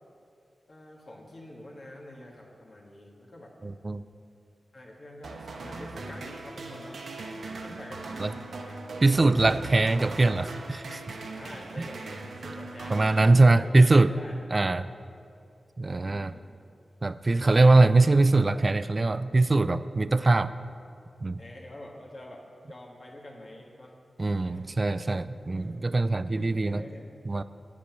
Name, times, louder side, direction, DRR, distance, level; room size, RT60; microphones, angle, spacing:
voice 1, 0.7-3.5 4.7-7.0 7.6-9.0 11.3-14.4 15.9-16.5 17.4-17.7 21.4-23.9 24.4-24.7 25.5-25.8 26.2-27.1, left 1 dB, 60° left, -2 dB, 2.0 m, -46 dB
voice 2, 3.6-4.0 8.2-8.3 9.0-11.0 11.8-11.9 12.9-14.1 14.5-14.9 15.8-16.3 17.0-20.5 21.2-21.4 24.2-26.8 27.3-27.4, right 2 dB, 40° right, 14 dB, 0.4 m, -22 dB
sound 1, 5.2-13.8, right 3 dB, 85° right, 0.8 m, -40 dB
8.8 x 8.4 x 6.1 m, 2.5 s
cardioid pair, 60°, 0 cm